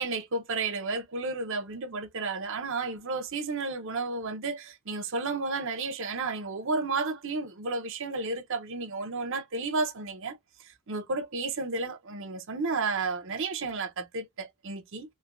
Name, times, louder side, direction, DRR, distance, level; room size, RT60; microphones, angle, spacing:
voice 1, 0.0-15.1, right 3 dB, 60° right, 0.8 m, -32 dB
3.3 x 2.7 x 2.4 m
head